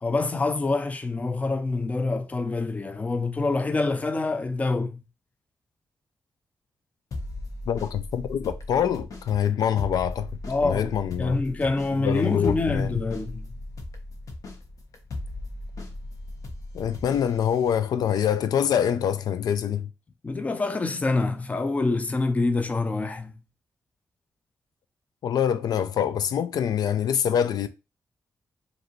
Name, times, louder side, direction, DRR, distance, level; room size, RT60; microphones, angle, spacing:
voice 1, 0.0-5.0 10.5-10.9 11.2-13.5 20.2-23.3, left 3 dB, 20° left, 0.5 m, -26 dB
sound 1, 7.1-17.8, left 2 dB, 60° left, 1.0 m, -38 dB
voice 2, 7.7-10.3 10.6-11.4 12.0-12.9 16.7-19.9 25.2-27.7, left 9 dB, 85° left, 0.4 m, -25 dB
5.1 x 2.6 x 3.0 m
wide cardioid pair, 150°, 7 cm